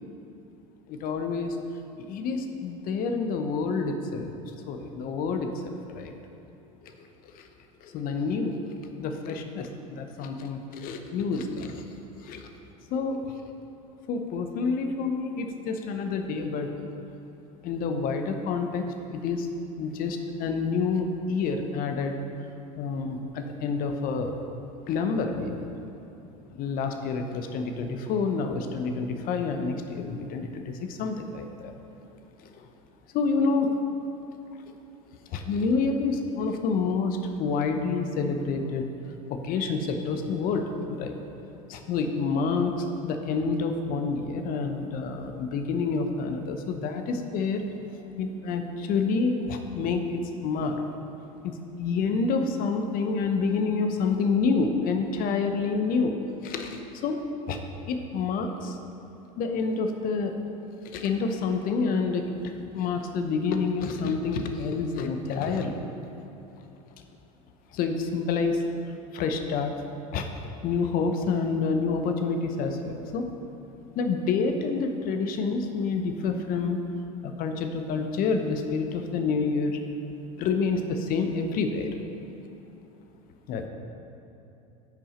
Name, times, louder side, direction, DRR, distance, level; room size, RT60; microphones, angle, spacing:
voice 1, 0.9-1.6 2.0-4.3 4.7-6.1 6.8-6.9 7.4-7.5 7.8-8.6 9.0-11.8 12.2-12.5 12.9-13.3 14.1-16.7 17.6-18.8 19.1-19.5 19.8-22.2 22.8-24.4 24.9-25.7 26.5-31.7 33.1-33.8 35.3-38.9 39.3-41.1 41.7-47.7 48.2-50.8 51.4-56.1 56.4-57.2 57.5-57.6 57.9-58.8 59.4-60.4 60.9-65.8 67.7-68.6 69.1-69.7 70.1-70.3 70.6-73.3 74.0-76.8 77.2-79.8 80.4-81.9 83.5-83.7, left 4 dB, 50° left, 6 dB, 0.9 m, -28 dB
10.5 x 6.1 x 4.3 m, 3.0 s
hypercardioid pair, 85°, 19 cm